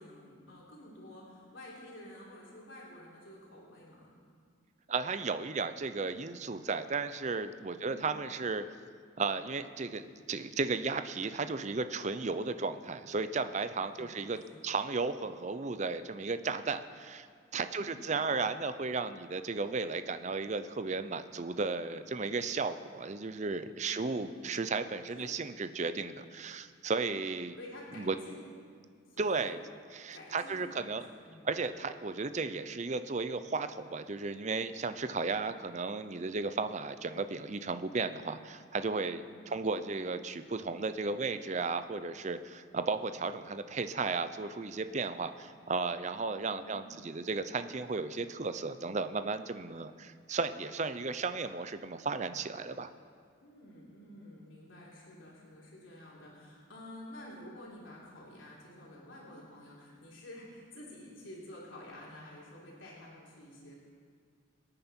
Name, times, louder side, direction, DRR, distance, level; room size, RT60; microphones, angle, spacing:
voice 1, 0.0-4.1 7.8-8.2 13.8-14.7 17.7-18.2 24.0-24.7 25.1-25.3 27.5-28.4 29.1-29.5 30.1-30.7 31.2-31.5 39.1-39.6 46.5-47.1 53.4-63.7, left 1 dB, 85° left, -5 dB, 3.6 m, -50 dB
voice 2, 4.9-8.6 9.2-17.3 17.5-27.6 28.0-28.1 29.2-29.6 29.9-31.0 31.4-52.9, right 4 dB, 35° right, 11 dB, 0.6 m, -34 dB
26.0 x 9.1 x 4.4 m, 2.1 s
head